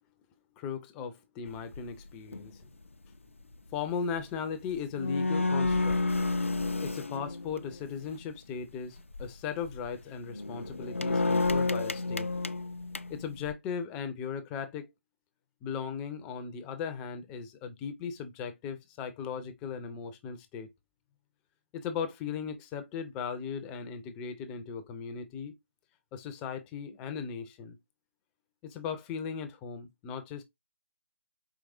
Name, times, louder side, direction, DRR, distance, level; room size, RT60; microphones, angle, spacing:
voice 1, 0.6-2.5 3.7-6.0 6.8-12.3 13.1-14.9 15.6-20.7 21.7-25.5 26.1-27.8 28.7-30.4, left 6 dB, 10° left, 0.4 m, -37 dB
sound 1, 1.5-1.8 2.3-2.6 4.5-4.6 4.7-8.1 9.0-9.3 9.6-9.9 10.3-13.5, left 3 dB, 90° left, 0.5 m, -30 dB
4.8 x 3.0 x 2.4 m
figure-of-eight pair, 155°, 7 cm